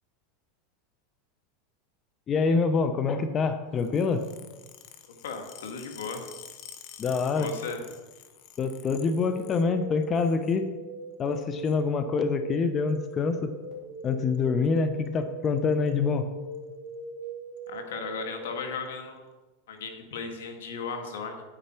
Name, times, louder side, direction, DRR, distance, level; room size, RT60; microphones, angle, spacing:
voice 1, 2.3-4.2 7.0-7.5 8.6-10.7 11.2-13.5 14.0-16.3, left 4 dB, 30° left, 9 dB, 0.7 m, -26 dB
sound 1, 3.8-9.7 10.0-10.6 11.3-11.8 12.9-13.1 14.1-14.4 14.7-14.8 15.1-15.2 15.5-15.9 16.5-16.6 17.6-17.7, left 9 dB, 50° left, 1.1 m, -49 dB
voice 2, 5.2-6.2 7.3-7.8 17.7-19.3 19.7-21.4, left 5 dB, 85° left, 4 dB, 1.8 m, -36 dB
sound 2, 8.9-18.5, right 2 dB, 15° left, 3.6 m, -41 dB
9.9 x 8.9 x 4.4 m, 1.2 s
supercardioid pair, 125°, 0 cm